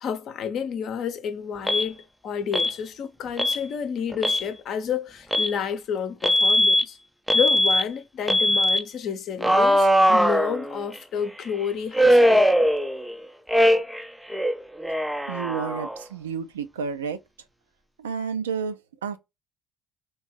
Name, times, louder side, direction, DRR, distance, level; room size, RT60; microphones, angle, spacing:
voice 1, 0.0-7.0 7.3-12.7, left 7 dB, 50° left, 0.7 m, -30 dB
Alarm, 1.7-1.9 2.5-2.8 3.4-3.6 4.1-4.5 5.3-5.5 6.2-6.8 7.3-7.8 8.3-8.8 9.4-11.0 11.9-13.1 13.5-14.0 14.3-16.0, equal, 5° right, 0.4 m, -20 dB
voice 2, 15.3-17.2 18.0-19.2, right 6 dB, 75° right, 0.4 m, -31 dB
3.4 x 3.0 x 4.4 m
figure-of-eight pair, 55°, 0 cm